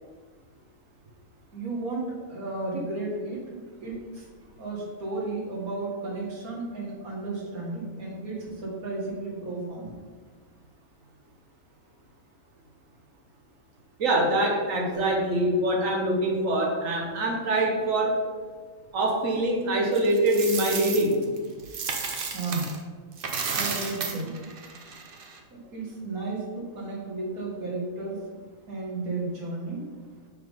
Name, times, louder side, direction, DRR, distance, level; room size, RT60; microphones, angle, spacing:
voice 1, 1.5-4.3 4.6-10.0 22.3-22.7 23.5-24.5 25.5-28.3 28.7-30.0, right 3 dB, 85° right, -3 dB, 2.0 m, -33 dB
voice 2, 14.0-18.2 18.9-21.2, right 1 dB, 70° right, 0 dB, 1.4 m, -24 dB
Coin (dropping), 19.9-22.8 23.1-25.4, right 5 dB, 50° right, 0.8 m, -33 dB
6.5 x 3.7 x 5.3 m, 1.5 s
omnidirectional pair, 1.5 m